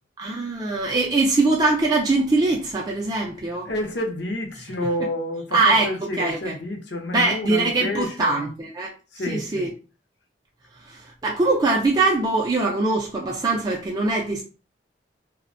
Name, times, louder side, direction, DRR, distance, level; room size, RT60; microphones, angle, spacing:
voice 1, 0.2-3.7 5.5-5.9 6.2-6.5 7.1-8.9 9.3-9.7 11.2-14.4, right 3 dB, 20° right, 0.3 m, -22 dB
voice 2, 3.6-8.5 9.1-9.7, left 1 dB, 65° left, 0.6 m, -29 dB
2.5 x 2.1 x 2.4 m
head